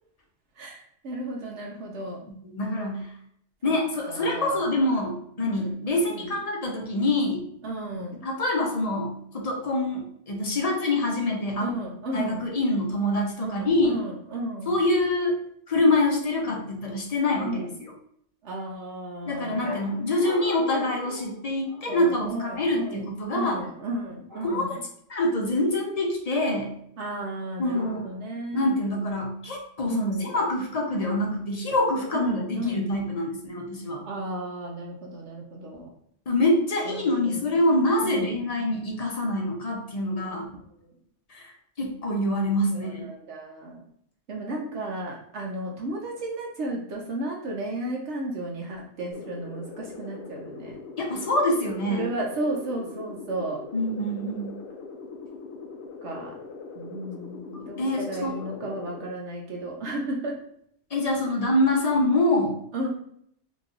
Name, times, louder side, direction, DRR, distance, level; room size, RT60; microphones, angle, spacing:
voice 1, 0.6-2.3 3.6-3.8 4.1-4.7 5.4-5.8 6.1-6.4 7.6-8.3 11.6-12.4 13.4-14.7 17.4-17.7 18.4-19.8 21.9-24.8 27.0-28.7 29.9-30.3 32.1-32.9 34.0-35.9 36.8-37.5 38.0-38.7 40.2-40.5 40.8-40.9 42.7-43.9 44.3-50.8 51.9-53.6 56.0-56.3 56.8-60.4 62.7-62.9, right 1 dB, 80° right, -2 dB, 1.0 m, -34 dB
voice 2, 2.5-3.1 3.6-7.4 8.2-11.7 12.1-13.9 14.7-15.4 15.7-17.6 19.3-23.6 24.4-24.7 25.1-26.7 27.6-28.0 28.5-34.0 36.3-40.5 41.3-41.5 41.8-43.0 51.0-52.0 53.7-54.6 57.5-58.3 58.6-58.7 60.9-62.6, left 1 dB, 40° left, 0 dB, 0.7 m, -25 dB
sound 1, 19.6-22.1 23.3-23.9 24.3-24.8 27.7-28.4 31.9-32.6, left 1 dB, 20° right, 1.2 m, -41 dB
sound 2, 49.1-59.1, left 4 dB, 80° left, 0.9 m, -41 dB
3.0 x 2.6 x 3.6 m, 0.68 s
omnidirectional pair, 1.2 m